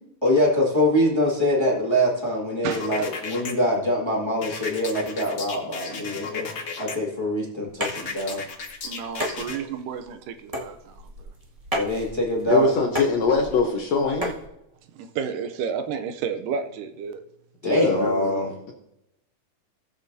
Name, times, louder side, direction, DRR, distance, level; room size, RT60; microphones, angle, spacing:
voice 1, 0.2-6.5 6.8-8.4 11.7-12.7 17.6-18.5, equal, 15° left, 1.2 m, -24 dB
voice 2, 2.6-3.3 8.8-11.3 14.9-17.2, right 6 dB, 80° right, 2.1 m, -32 dB
sound 1, 2.7-3.5 4.4-6.9 7.8-9.6, left 5 dB, 85° left, 0.9 m, -34 dB
sound 2, 7.7-14.5, equal, 40° right, 0.5 m, -34 dB
voice 3, 12.5-14.3 17.6-18.5, left 3 dB, 65° left, 1.7 m, -23 dB
19.0 x 7.2 x 2.7 m
omnidirectional pair, 4.0 m